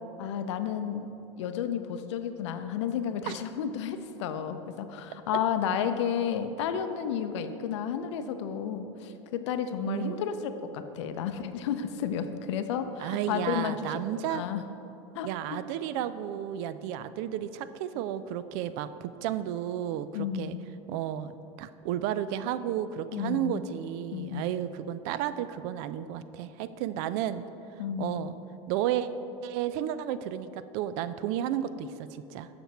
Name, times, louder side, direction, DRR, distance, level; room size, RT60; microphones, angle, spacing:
voice 1, 0.2-1.1 1.4-14.6 15.1-15.6 20.1-20.6 23.1-23.6 24.1-24.5 27.8-28.3, left 8 dB, 75° left, 9 dB, 0.5 m, -32 dB
voice 2, 9.9-10.2 13.0-14.4 15.2-20.5 20.9-21.3 21.6-27.4 28.0-28.4 28.7-29.1 29.4-32.5, right 11 dB, 65° right, 13 dB, 0.4 m, -32 dB
7.7 x 5.9 x 4.2 m, 2.9 s
hypercardioid pair, 90°, 15 cm